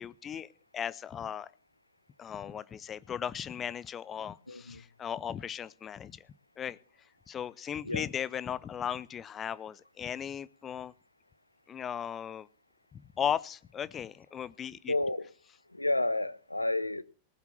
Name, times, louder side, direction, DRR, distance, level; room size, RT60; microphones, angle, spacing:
voice 1, 0.0-1.5 2.2-6.3 6.6-6.8 7.3-10.9 11.7-12.5 12.9-14.9, left 8 dB, 25° left, 0.6 m, -37 dB
voice 2, 4.5-4.8 7.8-8.1 14.9-15.3 15.7-17.0, left 2 dB, 85° left, 0.7 m, -31 dB
19.0 x 7.0 x 6.9 m
figure-of-eight pair, 90°, 0 cm